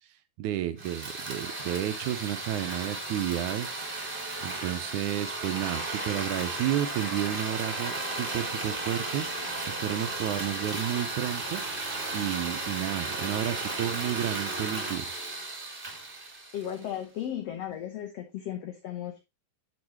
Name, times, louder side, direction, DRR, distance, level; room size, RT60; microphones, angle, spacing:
voice 1, 0.4-3.8 4.4-11.6 12.1-15.1, right 12 dB, 80° right, 10 dB, 1.8 m, -31 dB
sound 1, 0.8-17.0, right 2 dB, 20° right, 1.4 m, -34 dB
voice 2, 16.5-19.3, left 10 dB, 65° left, 4 dB, 1.7 m, -35 dB
8.7 x 8.4 x 3.0 m, 0.24 s
omnidirectional pair, 4.0 m